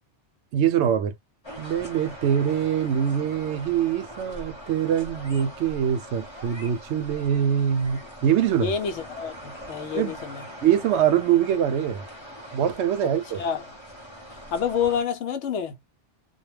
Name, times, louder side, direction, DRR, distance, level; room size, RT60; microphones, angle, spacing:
voice 1, 0.5-1.1 1.6-8.7 9.9-10.2 10.6-12.0 12.5-13.4, right 9 dB, 75° right, 0.9 m, -23 dB
sound 1, 1.4-15.0, equal, 25° left, 0.9 m, -42 dB
voice 2, 8.6-10.4 13.3-13.6 14.5-15.8, left 7 dB, 75° left, 0.9 m, -28 dB
2.3 x 2.2 x 3.1 m
omnidirectional pair, 1.2 m